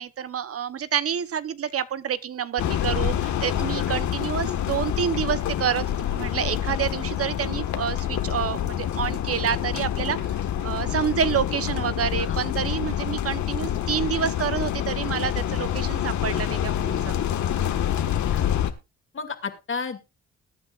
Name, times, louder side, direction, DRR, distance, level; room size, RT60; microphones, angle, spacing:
voice 1, 0.0-5.8 6.1-17.1, right 8 dB, 50° right, 0.9 m, -28 dB
sound 1, 2.6-18.7, left 10 dB, 70° left, 1.5 m, -27 dB
voice 2, 12.1-12.6 18.3-18.6 19.1-20.0, left 5 dB, 40° left, 2.3 m, -33 dB
20.5 x 9.4 x 2.4 m
cardioid pair, 90°, 30 cm